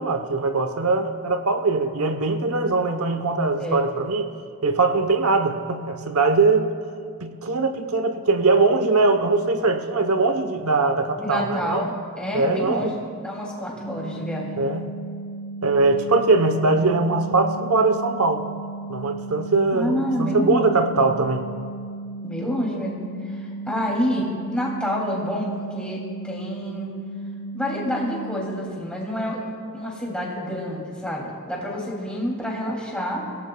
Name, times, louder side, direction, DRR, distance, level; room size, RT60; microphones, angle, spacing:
voice 1, 0.0-4.3 4.6-6.7 7.2-11.9 12.3-13.0 14.6-14.9 15.6-18.4 18.9-21.4, right 3 dB, 80° right, 8 dB, 0.9 m, -21 dB
voice 2, 11.2-11.9 12.2-14.5 19.7-20.7 22.2-23.0 23.3-26.9 27.5-29.4 29.7-33.2, equal, 5° left, -4 dB, 2.7 m, -28 dB
sound 1, 13.8-28.7, right 2 dB, 55° left, 1.3 m, -35 dB
25.0 x 17.0 x 2.3 m, 2.2 s
head